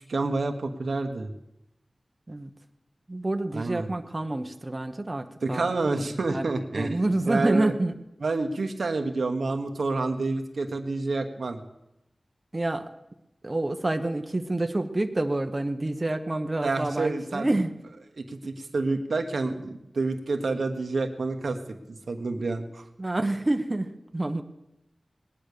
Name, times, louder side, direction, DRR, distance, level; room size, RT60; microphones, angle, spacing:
voice 1, 0.1-1.3 3.5-3.9 5.4-7.7 8.2-11.6 16.6-17.5 18.2-22.8, right 3 dB, 90° right, 5 dB, 1.3 m, -28 dB
voice 2, 3.1-6.0 6.3-7.9 12.5-12.9 13.4-17.7 23.0-24.4, right 2 dB, 35° right, 6 dB, 1.1 m, -28 dB
19.5 x 10.5 x 6.8 m, 0.88 s
wide cardioid pair, 65°, 0 cm